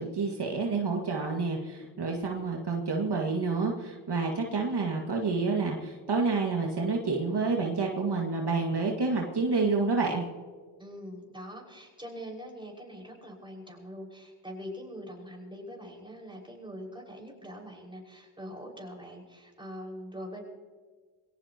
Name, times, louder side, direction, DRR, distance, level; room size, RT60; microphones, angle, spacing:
voice 1, 0.0-10.2, right 4 dB, 50° right, 0 dB, 2.1 m, -29 dB
voice 2, 10.8-20.4, equal, 10° right, -2 dB, 5.8 m, -43 dB
22.5 x 18.0 x 3.0 m, 1.6 s
cardioid pair, 55°, 49 cm